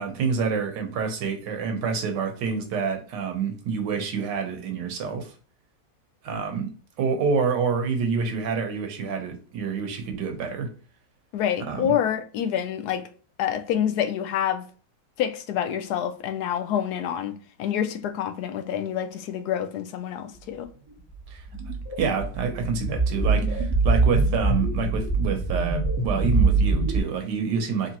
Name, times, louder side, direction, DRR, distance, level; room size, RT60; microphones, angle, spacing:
voice 1, 0.0-5.3 6.2-6.7 7.0-10.7 11.7-11.9 21.3-21.4 22.0-28.0, right 5 dB, 75° right, 1.4 m, -27 dB
voice 2, 11.3-13.1 13.4-14.7 15.2-17.3 17.6-20.7, left 9 dB, 75° left, 1.0 m, -27 dB
sound 1, 21.2-27.0, right 3 dB, 15° left, 1.7 m, -23 dB
3.7 x 3.2 x 2.8 m
omnidirectional pair, 1.9 m